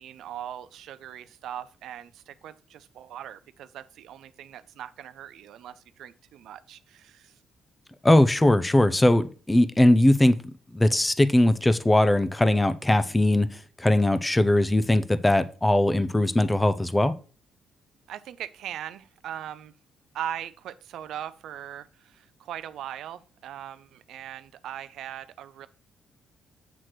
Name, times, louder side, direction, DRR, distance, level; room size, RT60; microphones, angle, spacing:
voice 1, 0.0-7.3 18.1-19.7 20.1-25.7, right 10 dB, 80° right, 0.4 m, -40 dB
voice 2, 8.0-10.4 10.7-17.1, left 1 dB, 10° left, 0.5 m, -20 dB
7.9 x 3.1 x 5.9 m
cardioid pair, 105°, 0 cm